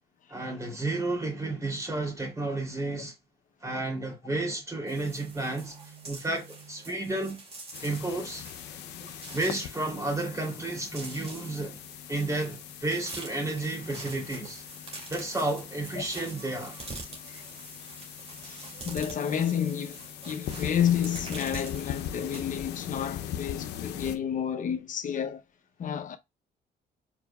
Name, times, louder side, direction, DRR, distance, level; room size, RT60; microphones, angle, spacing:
voice 1, 0.3-3.1 3.6-5.8 6.0-7.4 7.8-8.5 9.3-11.8 12.1-14.6 15.1-16.8, right 2 dB, 20° right, 2.9 m, -32 dB
sound 1, 4.9-22.4, right 3 dB, 35° right, 2.4 m, -45 dB
sound 2, 7.7-24.2, left 10 dB, 85° left, 0.6 m, -41 dB
voice 2, 18.4-25.4 25.8-26.2, left 9 dB, 50° left, 0.8 m, -30 dB
5.1 x 4.6 x 2.3 m
cardioid pair, 95°, 17 cm